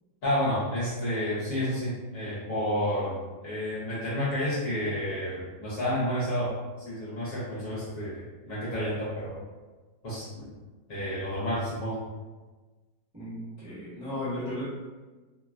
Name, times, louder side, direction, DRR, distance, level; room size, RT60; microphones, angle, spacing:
voice 1, 0.2-9.4 10.0-10.5 10.9-12.0, equal, 55° left, -9 dB, 1.1 m, -30 dB
voice 2, 13.1-14.7, left 1 dB, 15° right, -13 dB, 0.8 m, -35 dB
3.0 x 2.2 x 2.4 m, 1.3 s
omnidirectional pair, 1.9 m